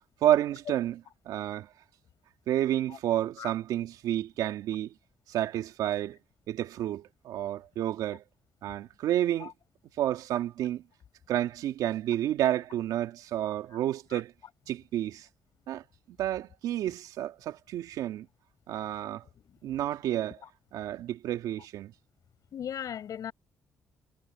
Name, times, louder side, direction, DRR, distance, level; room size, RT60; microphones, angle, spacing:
voice 1, 0.2-1.0 1.3-1.7 2.5-4.9 5.3-6.2 6.5-8.2 8.6-9.5 10.0-10.8 11.3-14.3 14.7-15.3 15.7-15.8 16.1-18.3 18.7-19.2 19.6-20.4 20.7-21.9, right 12 dB, 85° right, 2.7 m, -30 dB
voice 2, 22.5-23.3, left 9 dB, 65° left, 7.4 m, -37 dB
supercardioid pair, 70°, 6 cm